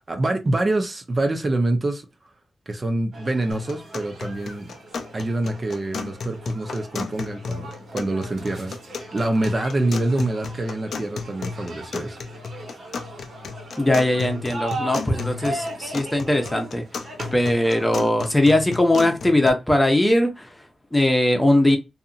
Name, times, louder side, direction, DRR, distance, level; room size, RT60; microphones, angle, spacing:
voice 1, 0.0-2.1 2.7-4.8 5.1-7.6 7.9-8.8 9.1-12.2, right 2 dB, 40° right, 0.7 m, -25 dB
sound 1, 3.1-18.1, right 2 dB, 75° right, 1.4 m, -38 dB
sound 2, 3.5-19.5, left 5 dB, 80° left, 0.4 m, -35 dB
voice 2, 13.8-17.0 17.3-21.8, left 1 dB, 10° left, 0.8 m, -20 dB
2.7 x 2.6 x 2.5 m
cardioid pair, 75°, 0 cm